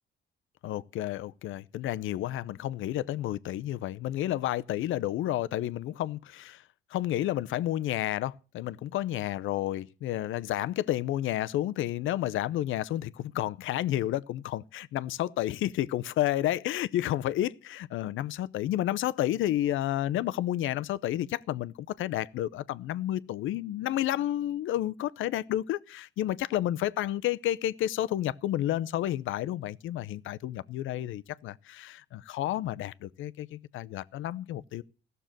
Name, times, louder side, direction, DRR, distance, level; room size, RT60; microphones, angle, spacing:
voice 1, 0.6-6.6 6.9-34.8, left 13 dB, 80° left, 0.6 m, -31 dB
15.0 x 6.8 x 7.4 m
cardioid pair, 90°, 20 cm